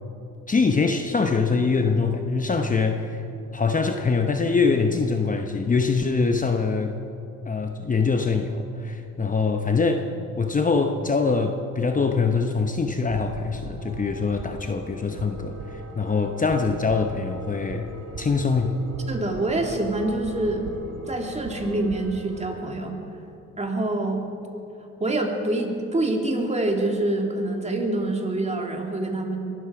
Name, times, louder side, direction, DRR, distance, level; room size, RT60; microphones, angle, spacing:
voice 1, 0.5-3.2 3.5-6.9 7.4-10.1 10.4-17.9 18.2-18.7, left 4 dB, 25° left, 5 dB, 0.9 m, -23 dB
sound 1, 12.9-22.6, right 3 dB, 85° right, 2.7 m, -39 dB
voice 2, 19.1-20.6 21.1-22.9 23.6-24.3 25.0-29.4, right 2 dB, 20° right, 2 dB, 2.6 m, -26 dB
22.5 x 13.0 x 4.9 m, 2.7 s
cardioid pair, 90°, 30 cm